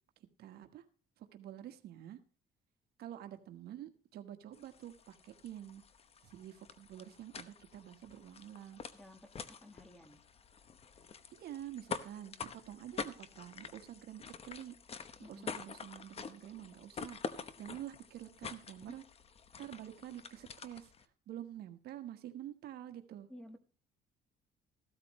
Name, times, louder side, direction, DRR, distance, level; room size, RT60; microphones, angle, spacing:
voice 1, 0.4-0.8 1.2-2.2 3.0-5.8 6.2-8.8 11.3-19.0 19.6-20.9 21.3-23.3, right 11 dB, 70° right, 8 dB, 1.4 m, -48 dB
sound 1, 4.5-21.0, left 5 dB, 35° left, 1.0 m, -47 dB
voice 2, 8.9-10.2 15.2-15.5 18.8-19.0 23.3-23.6, left 1 dB, 5° left, 9 dB, 1.4 m, -54 dB
15.0 x 12.5 x 3.2 m, 0.37 s
cardioid pair, 110°, 17 cm